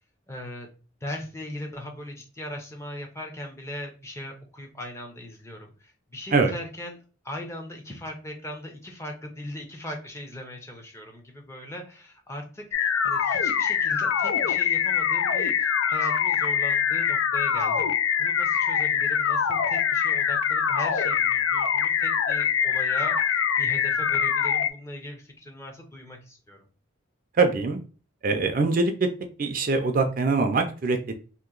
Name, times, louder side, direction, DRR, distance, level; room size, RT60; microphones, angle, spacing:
voice 1, 0.3-0.7 1.0-7.0 7.2-17.9 18.2-26.7, left 1 dB, 15° left, 2 dB, 0.6 m, -39 dB
sound 1, 12.7-24.7, left 7 dB, 85° left, 0.4 m, -24 dB
voice 2, 27.4-27.8 28.2-28.9 29.4-31.1, right 3 dB, 45° right, 6 dB, 0.4 m, -23 dB
2.9 x 2.6 x 3.7 m, 0.36 s
head